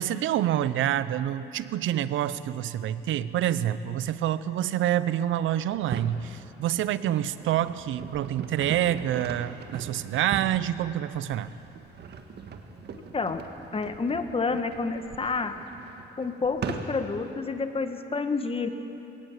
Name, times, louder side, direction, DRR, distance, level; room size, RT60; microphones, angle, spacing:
voice 1, 0.0-11.5, right 11 dB, 80° right, 15 dB, 0.7 m, -27 dB
sound 1, 5.7-6.2 6.9-17.2, right 6 dB, 55° right, 1.7 m, -40 dB
voice 2, 13.7-15.5 16.2-18.7, left 4 dB, 30° left, 8 dB, 1.4 m, -29 dB
21.0 x 18.0 x 7.5 m, 3.0 s
cardioid pair, 90°, 20 cm